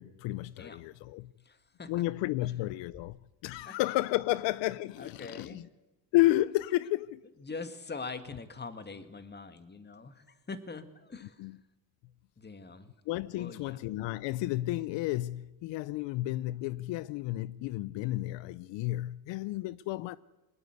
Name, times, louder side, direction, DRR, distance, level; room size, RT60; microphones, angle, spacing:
voice 1, 0.0-1.3 1.9-5.6 6.1-7.2 11.2-11.6 13.1-20.2, left 17 dB, 75° left, 0.7 m, -32 dB
voice 2, 0.6-0.9 1.4-1.9 2.4-2.5 3.7-3.8 5.0-5.6 7.4-11.5 12.4-12.9 13.3-13.8, left 4 dB, 25° left, 2.1 m, -43 dB
21.0 x 19.0 x 8.2 m
supercardioid pair, 90°, 44 cm